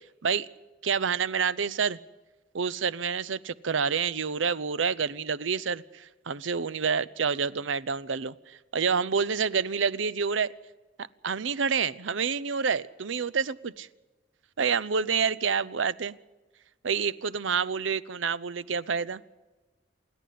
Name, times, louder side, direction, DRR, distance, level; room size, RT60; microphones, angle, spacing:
voice 1, 0.8-2.0 2.5-10.5 11.2-13.9 14.6-16.1 16.8-19.2, right 6 dB, 80° right, 17 dB, 0.7 m, -28 dB
28.0 x 10.0 x 9.4 m, 1.2 s
head